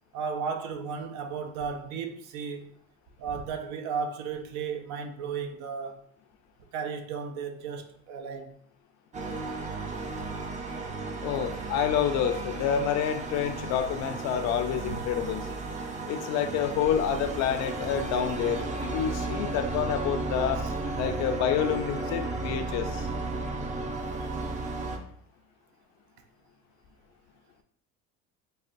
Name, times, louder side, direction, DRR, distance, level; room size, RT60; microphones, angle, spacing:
voice 1, 0.1-2.7 3.2-6.1 6.7-8.5 13.3-13.4 14.9-15.0 20.6-20.7 23.3-23.4, right 6 dB, 70° right, 0.6 m, -34 dB
sound 1, 9.1-25.0, right 3 dB, 25° right, 0.5 m, -34 dB
voice 2, 11.2-15.5 16.1-20.6 21.0-23.1, left 8 dB, 60° left, 0.5 m, -28 dB
4.1 x 2.1 x 2.5 m
supercardioid pair, 100°, 30 cm